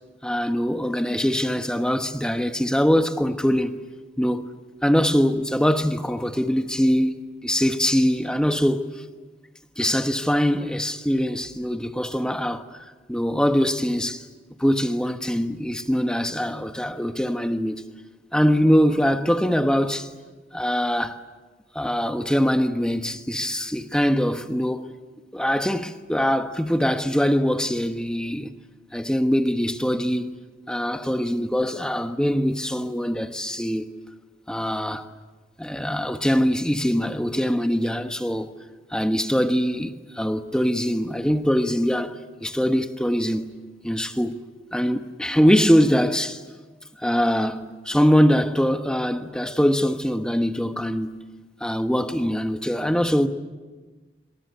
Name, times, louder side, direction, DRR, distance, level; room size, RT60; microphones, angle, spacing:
voice 1, 0.2-3.8 4.2-4.5 4.8-8.8 9.8-14.2 14.6-17.9 18.3-20.1 20.5-21.2 21.7-24.9 25.3-28.5 28.9-30.3 30.7-33.9 34.5-35.1 35.6-38.5 38.9-43.5 43.8-44.4 44.7-46.4 47.0-51.2 51.6-53.3, equal, 5° left, 1.2 m, -23 dB
26.5 x 26.0 x 8.3 m
head